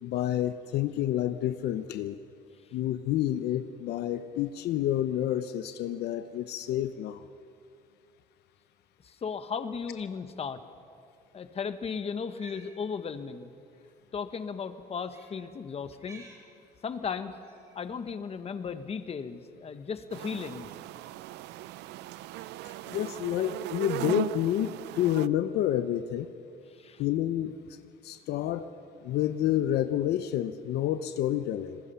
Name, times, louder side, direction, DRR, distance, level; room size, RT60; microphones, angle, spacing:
voice 1, 0.0-2.2 2.7-7.2 22.9-26.3 27.0-27.5 28.0-28.7 29.0-31.8, left 12 dB, 75° left, 11 dB, 0.8 m, -29 dB
voice 2, 9.0-10.6 11.3-13.5 14.1-16.2 16.8-17.3 17.7-20.7 26.7-27.0, left 6 dB, 35° left, 10 dB, 1.3 m, -36 dB
Cat, 12.2-12.7 13.8-13.9 15.0-15.4 15.9-16.4 17.4-17.8, right 3 dB, 20° right, 7.9 m, -52 dB
sound 1, 20.1-25.3, right 16 dB, 85° right, 0.5 m, -38 dB
26.0 x 21.0 x 5.7 m, 2.4 s
cardioid pair, 110°, 17 cm